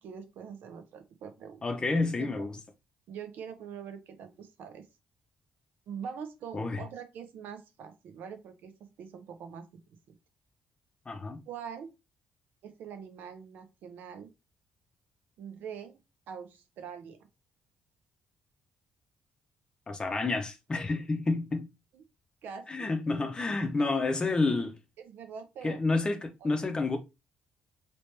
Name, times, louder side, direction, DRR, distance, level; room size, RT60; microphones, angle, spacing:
voice 1, 0.0-1.6 2.2-2.4 3.1-4.8 5.9-9.8 10.1-10.2 11.5-11.9 12.6-14.3 15.4-16.0 16.3-17.2 21.9-22.0 22.4-22.9 23.8-24.0 25.0-25.8 26.4-26.7, right 7 dB, 80° right, 0.8 m, -44 dB
voice 2, 1.6-2.6 6.5-6.8 11.1-11.4 19.9-21.7 22.7-24.8 25.6-27.0, left 3 dB, 25° left, 0.7 m, -29 dB
3.0 x 3.0 x 3.3 m
cardioid pair, 95°, 3 cm